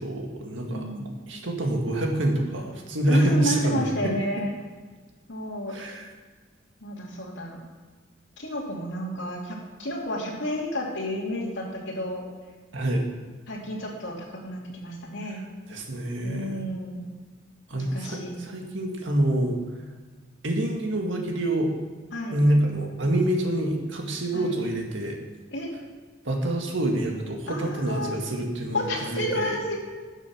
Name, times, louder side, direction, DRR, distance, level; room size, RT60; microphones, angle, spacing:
voice 1, 0.0-4.1 5.7-6.1 12.7-13.1 15.2-15.4 15.7-16.7 17.7-19.6 20.4-21.7 22.3-25.2 26.2-29.6, right 1 dB, 70° right, 1 dB, 1.9 m, -26 dB
voice 2, 0.7-1.1 3.1-4.5 5.3-5.7 6.8-7.6 8.4-12.2 13.5-15.4 16.2-17.0 17.7-18.4 22.1-22.4 24.3-24.6 25.5-25.7 27.5-28.2 28.7-29.8, left 1 dB, 65° left, -3 dB, 2.9 m, -31 dB
12.0 x 6.9 x 6.0 m, 1.4 s
head